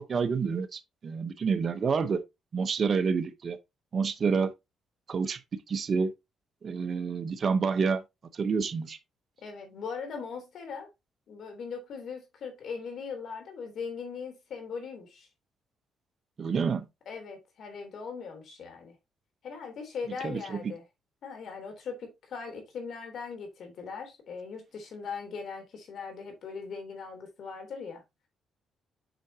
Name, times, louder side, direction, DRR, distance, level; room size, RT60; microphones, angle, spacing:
voice 1, 0.0-2.2 2.5-3.6 3.9-4.5 5.1-5.4 5.7-6.1 6.6-8.0 8.3-9.0 16.4-16.8 20.2-20.7, right 5 dB, 45° right, 0.9 m, -28 dB
voice 2, 9.4-10.9 11.3-15.3 17.0-18.9 19.4-20.8 21.2-28.0, left 5 dB, 65° left, 3.4 m, -40 dB
7.8 x 5.9 x 2.8 m
cardioid pair, 90°, 0 cm